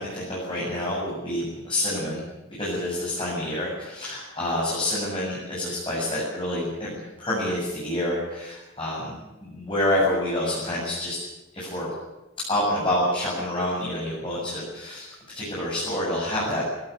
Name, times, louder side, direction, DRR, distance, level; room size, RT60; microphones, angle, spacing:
voice 1, 0.0-2.2 2.5-9.1 9.4-11.2 11.5-11.9 12.5-15.1 15.3-16.6, left 1 dB, 25° left, -6 dB, 8.0 m, -27 dB
21.0 x 17.5 x 8.4 m, 1.1 s
head